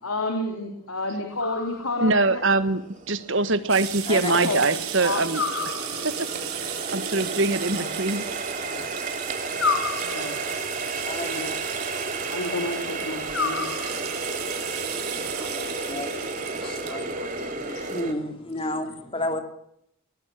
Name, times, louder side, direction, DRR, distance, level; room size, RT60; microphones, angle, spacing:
voice 1, 0.0-2.4 4.3-4.7 5.0-5.3 7.6-7.9 8.6-8.9 10.0-10.4 11.1-11.6 11.9-13.7 14.4-14.5 15.1-15.7 16.6-17.9 18.6-18.7, left 2 dB, 85° left, 4 dB, 3.4 m, -32 dB
sound 1, 1.4-2.2 5.3-6.3 9.6-10.6 13.3-14.3, left 5 dB, 65° left, 3.4 m, -30 dB
Water tap faucet, 1.6-1.7 2.3-18.1, right 3 dB, 35° right, 3.2 m, -33 dB
voice 2, 2.0-2.8 3.1-5.4 6.0-6.3 6.6-8.2, right 3 dB, 60° right, 12 dB, 1.7 m, -23 dB
sound 2, 3.7-18.0, right 11 dB, 90° right, 4.4 m, -36 dB
voice 3, 11.1-11.5 15.4-16.1 16.6-19.4, left 1 dB, 25° left, 6 dB, 2.9 m, -32 dB
21.0 x 20.5 x 7.7 m, 0.73 s
head